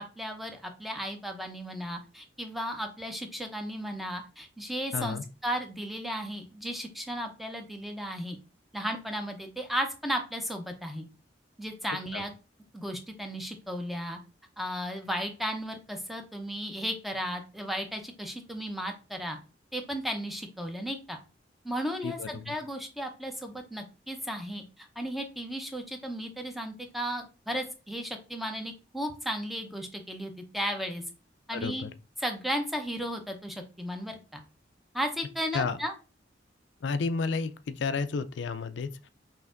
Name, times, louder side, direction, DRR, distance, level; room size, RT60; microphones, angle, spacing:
voice 1, 0.0-8.4 8.7-11.1 11.6-12.3 12.7-14.2 14.6-19.4 19.7-21.2 21.6-31.0 31.5-31.9 32.2-34.4 34.9-35.9, equal, ahead, 0.6 m, -35 dB
voice 2, 4.9-5.2 12.1-12.2 22.0-22.6 31.5-31.9 35.5-35.8 36.8-39.1, left 4 dB, 70° left, 0.4 m, -32 dB
5.7 x 2.6 x 2.5 m
head